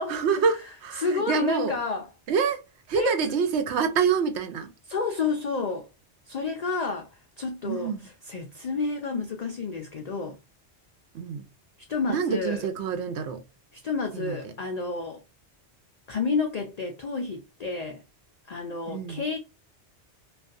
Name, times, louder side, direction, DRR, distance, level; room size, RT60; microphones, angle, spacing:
voice 1, 0.1-1.8 2.3-2.6 2.9-4.7 7.6-8.1 11.1-11.5 12.1-13.4 14.1-14.5 18.9-19.2, right 6 dB, 75° right, 0.9 m, -27 dB
voice 2, 1.0-2.1 2.9-3.3 4.9-5.9 6.3-7.9 8.3-10.4 11.9-12.6 13.7-15.2 16.1-18.0 18.5-19.4, left 4 dB, 60° left, 0.4 m, -30 dB
2.4 x 2.3 x 2.4 m
omnidirectional pair, 1.2 m